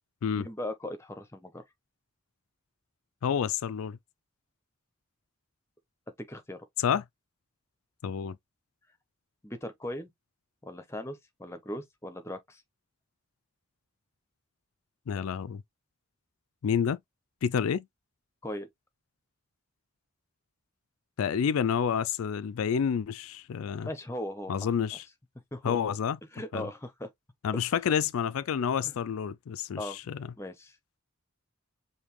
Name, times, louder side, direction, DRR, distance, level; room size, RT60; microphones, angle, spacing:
voice 1, 0.4-1.6 6.2-6.6 9.4-10.1 10.6-12.6 18.4-18.7 23.8-24.7 25.5-25.8 26.3-27.1 27.5-27.7 28.8-28.9 29.8-30.0 30.4-30.8, left 1 dB, 10° left, 0.8 m, -38 dB
voice 2, 3.2-4.0 6.8-7.0 8.0-8.4 15.1-15.6 16.6-17.0 17.4-17.9 21.2-23.9 24.5-25.1 25.6-26.2 26.5-26.7 27.4-30.3, left 7 dB, 80° left, 0.4 m, -29 dB
5.2 x 2.7 x 3.1 m
head